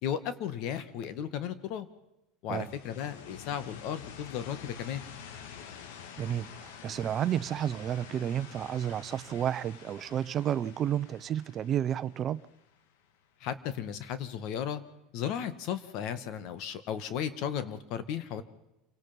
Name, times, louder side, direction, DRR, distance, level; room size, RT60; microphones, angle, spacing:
voice 1, 0.0-1.9 2.4-5.0 13.4-14.8 15.1-18.4, left 9 dB, 60° left, 2.1 m, -35 dB
sound 1, 2.5-13.2, left 8 dB, 80° left, 2.1 m, -48 dB
voice 2, 6.2-12.4, right 10 dB, 40° right, 0.8 m, -31 dB
28.0 x 18.0 x 5.4 m
supercardioid pair, 115°, 0 cm